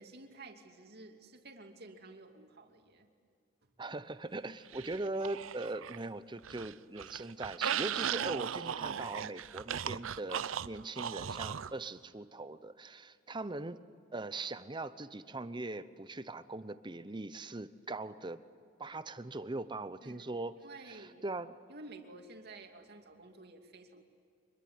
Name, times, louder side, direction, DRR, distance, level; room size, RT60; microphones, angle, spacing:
voice 1, 0.0-3.1 20.0-20.3 20.6-21.2 21.7-24.0, right 2 dB, 55° right, 3 dB, 2.6 m, -52 dB
voice 2, 3.8-13.8 14.1-18.4 18.8-20.6 20.9-21.6, right 2 dB, 25° right, 13 dB, 0.8 m, -41 dB
sound 1, 4.7-6.1 6.4-11.7, right 8 dB, 75° right, 0.6 m, -37 dB
25.0 x 22.0 x 9.5 m, 2.3 s
head